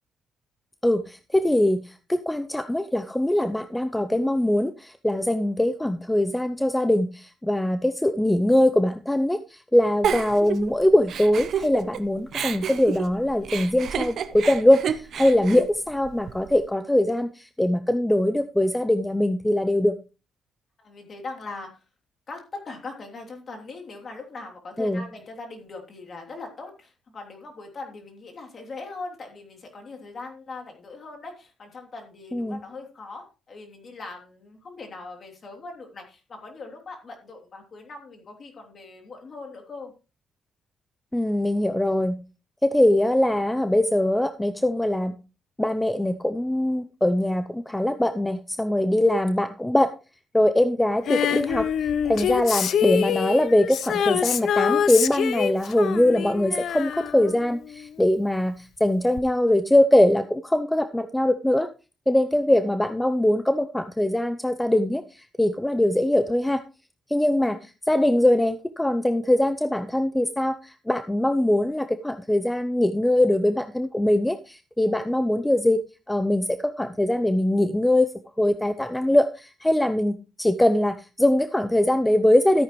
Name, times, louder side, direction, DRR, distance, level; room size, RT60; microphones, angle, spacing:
voice 1, 0.8-19.9 24.8-25.0 32.3-32.6 41.1-42.2 42.6-45.1 45.6-49.9 50.3-51.7 52.0-61.7 62.1-66.6 67.1-75.8 76.1-78.1 78.4-82.6, left 1 dB, 10° left, 11 dB, 0.6 m, -22 dB
Giggle, 10.0-12.0 12.3-16.5, right 8 dB, 65° right, 0.9 m, -30 dB
voice 2, 20.8-21.8 22.3-39.9 62.2-62.8 67.4-67.6, left 3 dB, 45° left, 2 dB, 3.0 m, -40 dB
Female singing, 51.1-58.0 59.2-59.3, left 8 dB, 65° left, 0.7 m, -26 dB
13.5 x 8.8 x 3.1 m, 0.31 s
cardioid pair, 90°, 0 cm